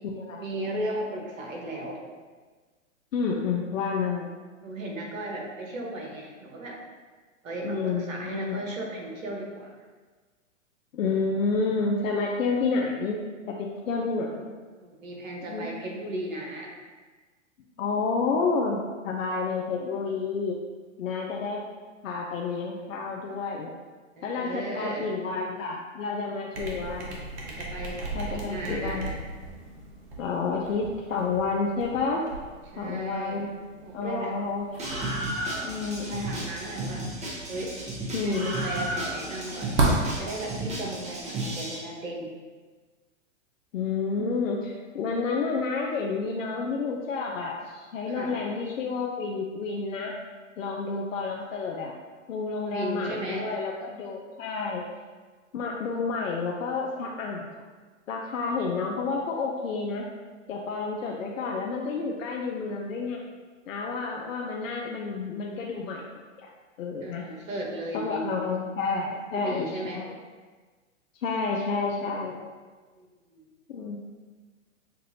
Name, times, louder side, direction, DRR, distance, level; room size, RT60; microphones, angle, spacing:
voice 1, 0.4-2.0 4.6-6.8 7.4-9.7 14.8-16.7 24.2-25.1 27.4-29.1 32.7-33.4 33.8-34.4 36.1-37.1 37.5-37.8 38.1-42.3 48.1-48.4 52.7-53.5 67.0-68.4 69.2-70.0 73.0-73.1 73.3-73.5, right 1 dB, 80° right, -1 dB, 1.3 m, -36 dB
voice 2, 3.1-4.3 7.6-8.6 10.9-13.2 13.5-14.5 15.5-15.7 17.8-20.6 21.0-21.6 22.0-23.7 24.2-27.2 28.1-29.1 30.2-32.3 32.8-33.5 33.9-35.3 35.6-36.4 38.1-38.5 43.7-50.1 50.6-51.9 52.3-54.8 55.5-57.5 58.1-60.1 60.5-63.2 63.7-66.0 66.8-67.2 67.9-70.1 71.2-72.4 73.7-74.0, left 4 dB, 80° left, -1 dB, 0.6 m, -30 dB
sound 1, 26.5-41.3, right 2 dB, 60° right, 1.2 m, -35 dB
Screaming, 34.8-41.8, right 1 dB, 15° right, 0.9 m, -33 dB
6.7 x 2.5 x 2.8 m, 1.4 s
hypercardioid pair, 115°, 39 cm